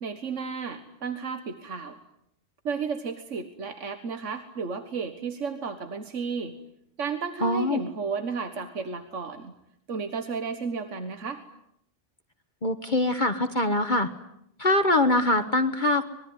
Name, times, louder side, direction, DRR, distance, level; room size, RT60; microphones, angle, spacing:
voice 1, 0.0-2.0 2.7-6.5 7.0-9.6 9.9-11.4, right 5 dB, 80° right, 8 dB, 1.9 m, -33 dB
voice 2, 7.4-7.8 12.6-14.1 14.6-16.0, left 2 dB, 40° left, 9 dB, 1.4 m, -23 dB
25.5 x 22.0 x 9.7 m, 0.76 s
omnidirectional pair, 1.2 m